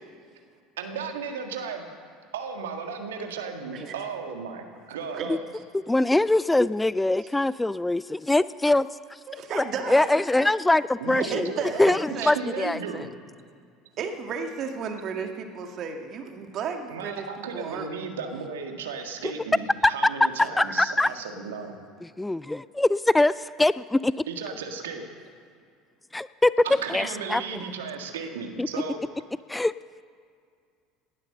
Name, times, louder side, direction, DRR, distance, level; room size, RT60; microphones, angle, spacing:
voice 1, 0.8-1.9 2.3-5.2 11.0-11.8 12.2-13.1 16.9-21.8 24.3-25.0 26.6-29.0, right 5 dB, 80° right, 4 dB, 1.8 m, -35 dB
voice 2, 5.1-5.6 9.3-10.1 11.1-12.4 14.0-17.9 27.6-27.7, right 5 dB, 50° right, 4 dB, 2.0 m, -33 dB
voice 3, 5.9-8.9 9.5-11.5 11.8-13.0 19.8-19.9 20.6-21.1 22.2-24.1 26.1-26.5 26.9-27.4 28.6-28.7 29.5-29.7, left 2 dB, 10° left, 18 dB, 0.3 m, -23 dB
18.5 x 11.0 x 6.7 m, 2.3 s
hypercardioid pair, 70°, 0 cm